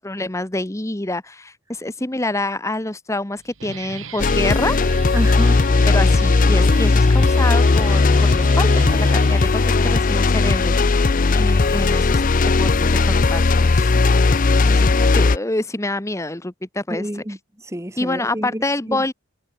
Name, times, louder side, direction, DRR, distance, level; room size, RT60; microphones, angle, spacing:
voice 1, 0.0-4.8 5.9-11.0 11.3-12.2 12.6-13.4 13.7-14.4 14.7-17.1 18.0-19.1, left 2 dB, 15° left, 0.9 m, -27 dB
Guitar, 3.4-10.0, right 4 dB, 60° right, 1.8 m, -36 dB
sound 1, 4.2-15.4, left 3 dB, 35° left, 0.5 m, -16 dB
voice 2, 5.1-5.7 16.9-19.0, equal, 15° right, 2.1 m, -29 dB
head